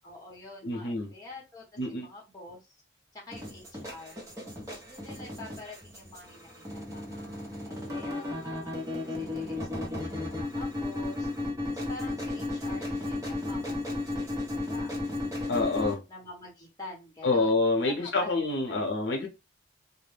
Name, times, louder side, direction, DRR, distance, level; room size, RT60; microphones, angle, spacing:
voice 1, 0.0-2.8 3.1-4.2 4.7-8.7 9.0-11.3 11.7-15.2 16.1-18.9, left 2 dB, 20° left, 0.9 m, -47 dB
voice 2, 0.6-1.1 1.8-2.1 15.5-16.0 17.2-19.3, left 3 dB, 70° left, 0.6 m, -27 dB
sound 1, 3.3-15.9, left 2 dB, 15° right, 0.8 m, -34 dB
2.3 x 2.0 x 3.1 m
head